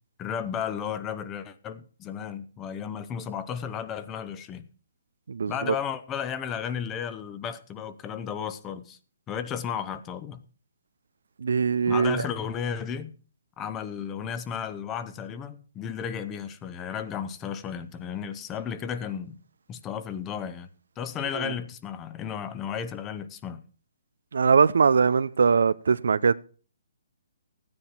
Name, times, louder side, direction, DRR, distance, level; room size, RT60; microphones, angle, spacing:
voice 1, 0.2-4.6 5.5-9.0 9.3-10.4 11.9-13.1 13.6-19.4 19.7-20.7 21.0-23.6, left 8 dB, 20° left, 0.9 m, -34 dB
voice 2, 5.3-5.7 11.4-12.3 21.3-21.5 24.3-26.3, right 5 dB, 75° right, 0.6 m, -22 dB
14.0 x 9.7 x 4.5 m
hypercardioid pair, 150°, 0 cm